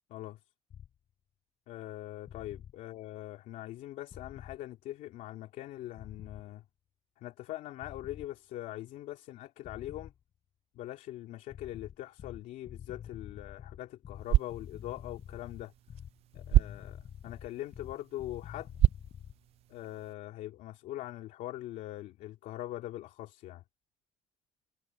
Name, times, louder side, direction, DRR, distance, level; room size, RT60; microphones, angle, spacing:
voice 1, 0.1-0.4 1.7-6.6 7.2-10.1 10.7-15.7 16.3-18.7 19.7-23.6, left 14 dB, 75° left, 2.6 m, -42 dB
sound 1, 0.7-0.9 2.3-2.7 4.1-4.6 5.9-6.5 7.8-8.3 9.6-10.2 11.5-19.4, left 9 dB, 40° left, 3.9 m, -47 dB
sound 2, 14.1-20.1, right 14 dB, 50° right, 0.4 m, -32 dB
cardioid pair, 175°, 13 cm